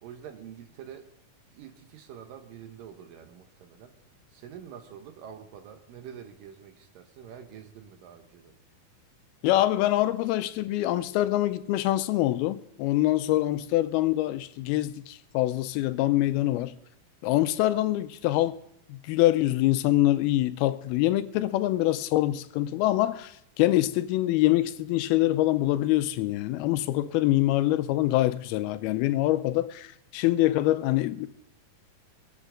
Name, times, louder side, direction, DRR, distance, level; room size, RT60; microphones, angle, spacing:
voice 1, 0.0-1.1 1.5-3.9 4.3-8.5, right 8 dB, 75° right, 2.5 m, -46 dB
voice 2, 9.4-16.8 17.2-18.6 18.9-31.3, left 15 dB, 90° left, 2.5 m, -25 dB
23.0 x 8.2 x 3.8 m
omnidirectional pair, 4.3 m